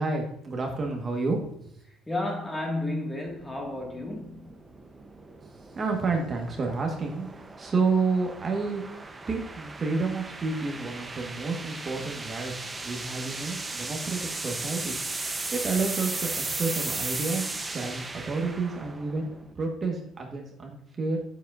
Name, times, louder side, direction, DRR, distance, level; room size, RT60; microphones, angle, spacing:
voice 1, 0.0-1.7 5.4-8.8 9.3-19.3 19.6-21.2, right 4 dB, 35° right, 1.3 m, -30 dB
voice 2, 2.1-4.6 12.0-12.1, left 2 dB, 10° left, 1.7 m, -32 dB
sound 1, 3.3-19.5, right 3 dB, 20° right, 0.7 m, -36 dB
7.2 x 7.2 x 2.5 m
cardioid pair, 95°, 0 cm